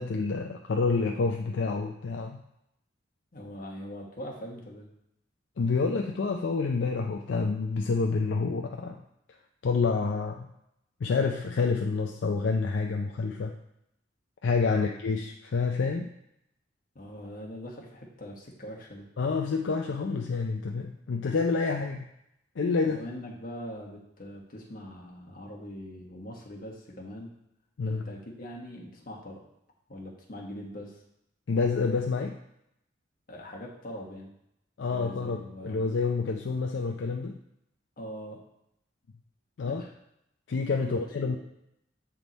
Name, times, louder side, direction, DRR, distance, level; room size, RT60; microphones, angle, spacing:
voice 1, 0.0-2.4 5.6-9.0 9.6-10.5 11.0-13.5 14.4-16.1 19.2-22.0 22.6-23.0 27.8-28.0 31.5-32.4 34.8-37.4 39.6-39.8 40.5-41.4, left 4 dB, 70° left, 2 dB, 0.4 m, -28 dB
voice 2, 3.3-4.9 16.9-19.1 21.8-21.9 22.8-27.3 27.8-29.4 29.9-31.0 33.3-34.3 34.9-35.8 38.0-38.4 39.6-39.9 40.8-40.9 41.2-41.4, equal, 50° left, -1 dB, 1.3 m, -42 dB
7.5 x 3.6 x 4.0 m, 0.81 s
head